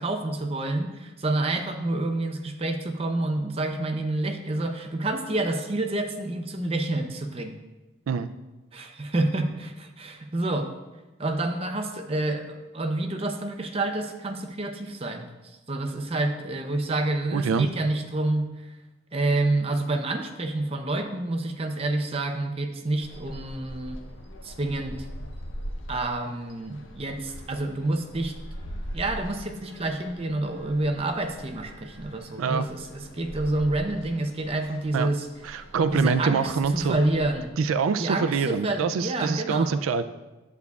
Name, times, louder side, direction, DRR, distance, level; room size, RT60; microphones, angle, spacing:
voice 1, 0.0-7.6 8.7-10.7 11.2-18.8 19.1-24.0 24.4-25.1 25.9-28.3 28.9-35.3 35.9-37.5 38.0-39.7, right 2 dB, 30° right, 5 dB, 0.6 m, -28 dB
voice 2, 17.3-17.7 32.4-32.7 34.9-35.1 35.4-37.0 37.6-40.1, right 5 dB, 85° right, 11 dB, 0.4 m, -25 dB
sound 1, 23.0-37.5, equal, 70° left, 0.8 m, -42 dB
10.5 x 8.1 x 2.3 m, 1.1 s
head